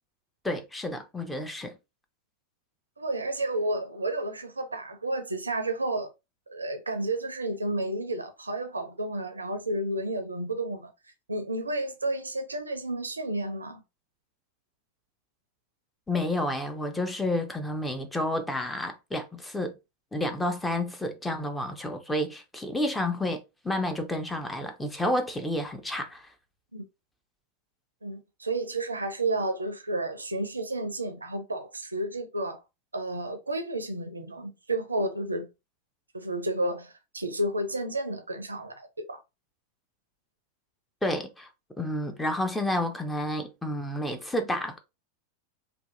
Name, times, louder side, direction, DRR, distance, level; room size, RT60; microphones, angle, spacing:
voice 1, 0.4-1.8 16.1-19.7 20.1-26.3 41.0-41.5 41.8-44.8, left 1 dB, 10° left, 0.5 m, -30 dB
voice 2, 3.0-6.1 6.5-10.9 11.3-13.8 26.7-26.8 28.0-32.6 32.9-35.5 36.1-39.2, right 1 dB, 80° right, 0.5 m, -31 dB
2.6 x 2.2 x 2.6 m
figure-of-eight pair, 90°, 0 cm